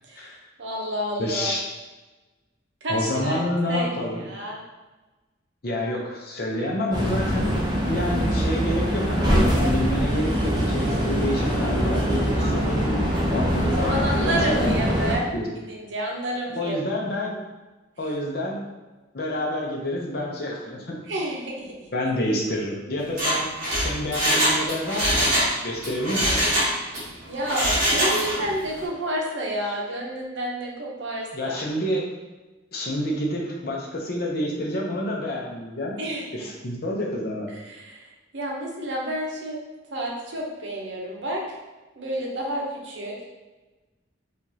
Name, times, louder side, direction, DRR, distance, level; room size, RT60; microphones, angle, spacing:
voice 1, 0.6-1.5 2.8-3.4 3.7-3.9 4.3-4.6 13.6-15.3 15.7-16.8 21.1-21.7 27.2-31.6 36.0-36.5 37.7-38.0 38.3-39.6 39.9-41.4 42.0-43.1, equal, 70° right, -2 dB, 0.8 m, -29 dB
voice 2, 1.2-1.6 2.9-4.3 5.6-12.7 13.3-14.7 15.3-15.5 16.5-17.4 18.0-18.6 19.1-21.0 21.9-23.5 23.8-26.4 31.3-32.1 32.7-36.0 36.3-37.5, left 1 dB, 55° left, -1 dB, 0.7 m, -28 dB
sound 1, 6.9-15.2, equal, 20° right, 0.7 m, -23 dB
Mechanisms, 23.0-25.5 25.8-27.0 27.4-28.5 28.8-28.9, equal, 45° right, 1.3 m, -23 dB
4.7 x 2.5 x 2.8 m, 1.2 s
head